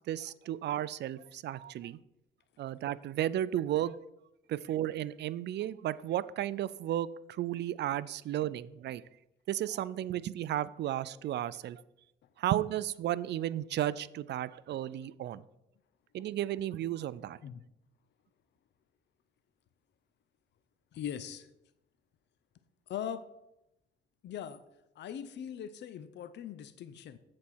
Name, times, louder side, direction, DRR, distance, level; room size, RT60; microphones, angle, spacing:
voice 1, 0.1-2.0 2.6-3.9 4.5-9.0 9.5-11.8 12.4-15.4 16.1-17.4, right 12 dB, 60° right, 18 dB, 0.4 m, -34 dB
voice 2, 20.9-21.5 22.9-23.2 24.2-24.6 25.0-27.2, left 9 dB, 60° left, 12 dB, 0.6 m, -40 dB
7.5 x 4.2 x 6.1 m, 0.88 s
cardioid pair, 90°, 20 cm